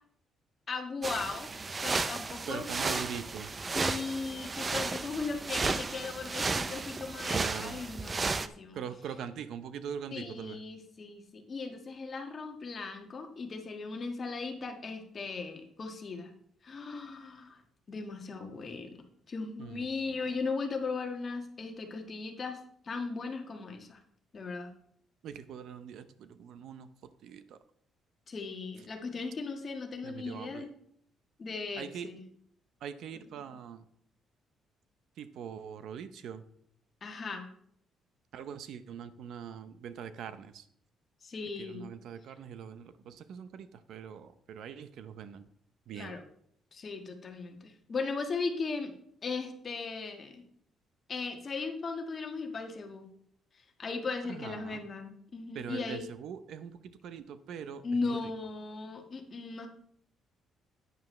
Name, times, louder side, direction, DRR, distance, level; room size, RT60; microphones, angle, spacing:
voice 1, 0.7-1.5 1.8-3.0 3.7-8.8 10.1-16.3 16.6-17.6 17.9-22.6 22.8-24.0 24.3-24.7 28.3-30.7 31.4-32.2 37.0-37.5 41.2-41.8 45.9-46.2 46.7-48.9 49.2-50.4 51.1-53.1 53.8-56.1 57.8-59.7, left 4 dB, 35° left, 4 dB, 1.5 m, -37 dB
sound 1, 1.0-8.5, right 4 dB, 25° right, 0.5 m, -34 dB
voice 2, 2.5-3.5 7.3-7.8 8.7-10.6 19.6-20.2 25.2-27.6 30.0-30.7 31.8-32.1 32.8-33.9 35.2-36.4 38.3-40.7 41.6-45.5 45.9-46.2 54.3-54.8 55.5-58.2, right 8 dB, 70° right, 12 dB, 0.7 m, -42 dB
10.5 x 9.4 x 3.2 m, 0.67 s
cardioid pair, 125°, 0 cm